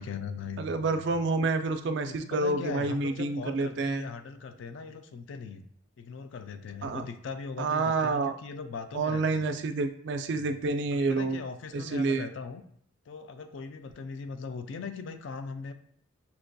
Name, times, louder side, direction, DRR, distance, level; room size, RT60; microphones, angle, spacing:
voice 1, 0.0-1.1 2.1-5.7 6.0-9.5 10.3-10.6 10.9-12.6 13.1-15.7, left 5 dB, 65° left, 9 dB, 0.3 m, -40 dB
voice 2, 0.6-4.0 6.8-7.0 7.6-8.3 8.9-11.4 11.7-12.3, right 3 dB, 60° right, 8 dB, 0.3 m, -28 dB
5.7 x 2.5 x 2.2 m, 0.63 s
head